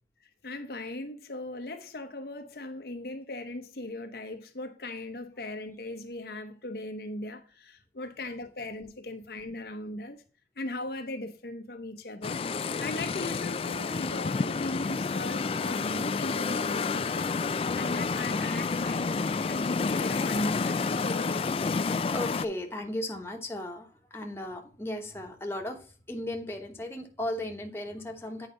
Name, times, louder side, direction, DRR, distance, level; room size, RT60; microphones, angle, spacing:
voice 1, 0.4-10.2 10.6-12.4 12.8-17.3 17.8-21.4, left 2 dB, 60° left, 0.8 m, -38 dB
sound 1, 12.2-22.4, left 4 dB, 30° left, 0.3 m, -29 dB
voice 2, 22.1-23.9 24.1-28.5, left 1 dB, 15° left, 1.1 m, -36 dB
8.7 x 4.9 x 3.9 m
head